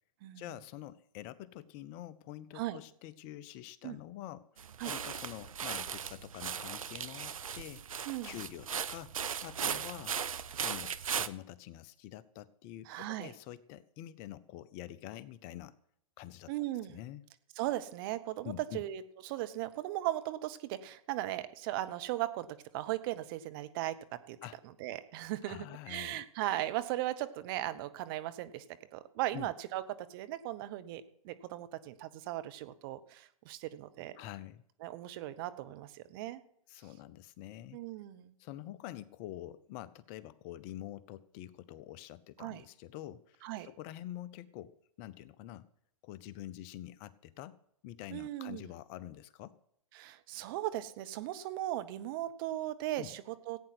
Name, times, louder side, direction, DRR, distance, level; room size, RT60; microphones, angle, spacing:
voice 1, 0.4-10.2 10.6-15.8 16.2-16.5 16.9-17.2 18.4-18.8 24.4-24.6 25.4-26.2 29.3-29.5 34.2-34.6 36.7-37.8 38.4-45.7 46.0-47.6 47.8-49.6 53.0-53.1, left 13 dB, 35° left, 17 dB, 0.7 m, -46 dB
sound 1, 4.6-11.3, right 7 dB, 75° right, 0.8 m, -38 dB
voice 2, 8.0-8.4 9.6-9.8 12.9-13.3 16.5-17.0 17.6-22.5 22.7-24.4 24.8-28.6 28.9-34.1 34.8-36.4 37.7-38.3 42.4-42.6 43.4-43.7 48.1-48.7 49.9-53.6, right 14 dB, 40° right, 12 dB, 1.0 m, -37 dB
15.5 x 8.9 x 6.0 m, 0.71 s
figure-of-eight pair, 115°, 18 cm